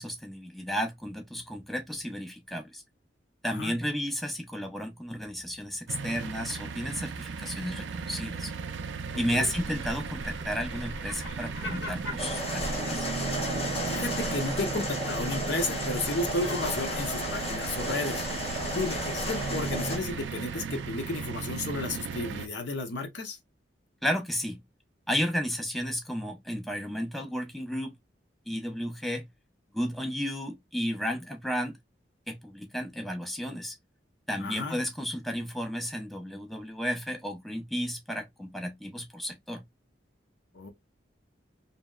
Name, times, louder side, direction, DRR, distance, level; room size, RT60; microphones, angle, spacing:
voice 1, 0.0-2.8 3.4-8.5 9.2-13.1 24.0-24.6 25.1-27.9 28.5-29.3 29.7-31.8 32.3-33.8 34.3-39.6, equal, ahead, 0.4 m, -33 dB
sound 1, 5.9-22.5, right 5 dB, 80° right, 0.4 m, -36 dB
voice 2, 9.1-9.5 13.9-18.2 18.7-23.4 34.4-34.8 40.5-40.7, left 2 dB, 75° left, 0.7 m, -33 dB
sound 2, 9.5-20.3, left 1 dB, 90° left, 1.2 m, -41 dB
sound 3, 12.2-20.0, equal, 35° left, 0.7 m, -34 dB
2.8 x 2.0 x 2.2 m
head